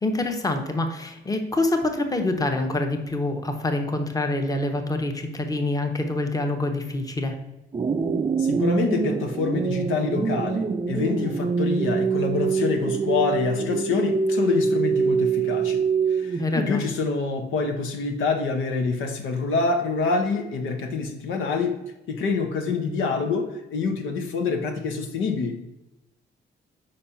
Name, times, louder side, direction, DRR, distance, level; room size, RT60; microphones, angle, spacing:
voice 1, 0.0-7.4 16.4-16.9, left 2 dB, 20° left, 5 dB, 1.0 m, -26 dB
sound 1, 7.7-16.7, right 5 dB, 25° right, 0.4 m, -24 dB
voice 2, 8.4-21.8 22.1-25.6, left 4 dB, 85° left, 4 dB, 1.0 m, -26 dB
5.1 x 4.3 x 5.5 m, 0.92 s
cardioid pair, 90°, 20 cm